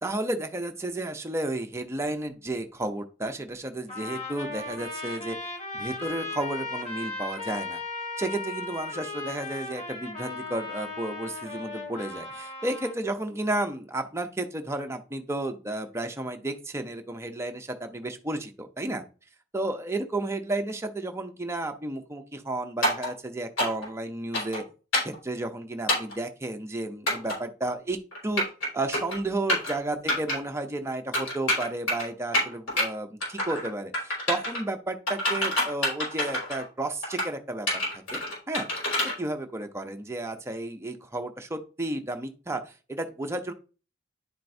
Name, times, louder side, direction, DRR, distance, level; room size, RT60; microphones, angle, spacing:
voice 1, 0.0-5.4 5.7-7.8 8.2-19.0 19.5-24.6 25.0-28.4 28.7-37.7 37.9-38.2 38.5-38.6 39.0-43.5, right 2 dB, 15° right, 5 dB, 0.6 m, -32 dB
Trumpet, 3.9-13.0, left 3 dB, 30° left, 1.4 m, -36 dB
sound 1, 22.8-23.1 23.6-23.9 24.3-24.6 24.9-25.2 25.9-26.1 27.1-27.4 28.1-28.7 28.9-29.2 29.5-29.7 30.1-30.4 31.1-32.0 32.3-32.8 33.2-33.7 33.9-34.6 35.1-36.6 37.0-37.3 37.7-39.1, left 1 dB, 80° left, 4.2 m, -26 dB
10.5 x 4.5 x 2.6 m, 0.35 s
head